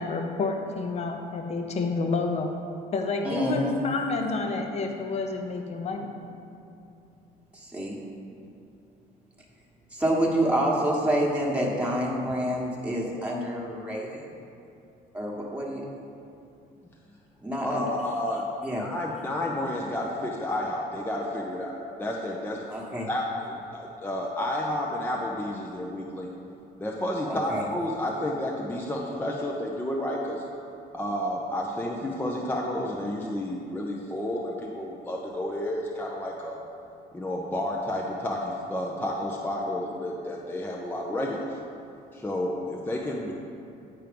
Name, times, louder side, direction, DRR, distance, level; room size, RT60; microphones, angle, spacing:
voice 1, 0.0-2.5 2.9-6.1, left 3 dB, 40° left, 3 dB, 0.8 m, -29 dB
voice 2, 3.2-3.8 7.5-8.0 9.9-14.2 15.1-15.8 17.4-17.9 18.6-18.8 22.7-23.1 27.3-27.6, right 1 dB, 5° right, -4 dB, 1.4 m, -27 dB
voice 3, 17.6-18.5 18.8-21.7 22.0-22.6 23.1-26.3 26.8-30.4 30.9-36.6 37.1-41.5 42.1-43.3, left 1 dB, 10° left, -2 dB, 0.7 m, -31 dB
9.0 x 4.5 x 5.2 m, 2.7 s
cardioid pair, 110°, 17 cm